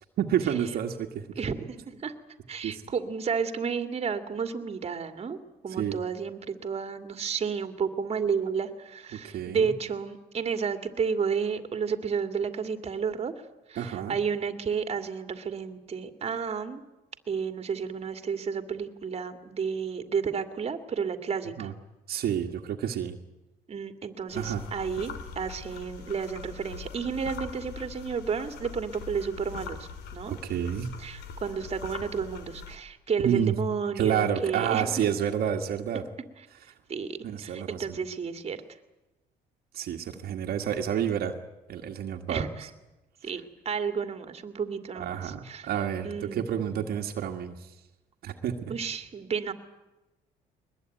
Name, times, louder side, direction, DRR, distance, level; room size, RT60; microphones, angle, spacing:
voice 1, 0.2-1.3 2.6-2.8 5.8-6.0 9.2-9.7 13.8-14.2 21.6-21.7 22.1-23.2 24.3-24.6 30.3-30.9 33.2-33.5 34.0-36.0 37.2-38.0 39.7-41.3 41.7-42.5 43.2-43.3 44.9-47.7 48.2-48.7, right 9 dB, 65° right, 4 dB, 1.8 m, -29 dB
voice 2, 1.4-2.1 2.5-5.4 5.6-16.8 17.3-21.7 23.7-30.4 31.0-35.1 36.9-38.6 42.3-42.7 43.2-45.7 46.0-46.8 48.7-49.5, right 6 dB, 35° right, 8 dB, 2.3 m, -32 dB
sound 1, 24.3-32.8, left 6 dB, 80° left, 3.1 m, -42 dB
22.0 x 21.0 x 9.3 m, 1.0 s
cardioid pair, 110°, 17 cm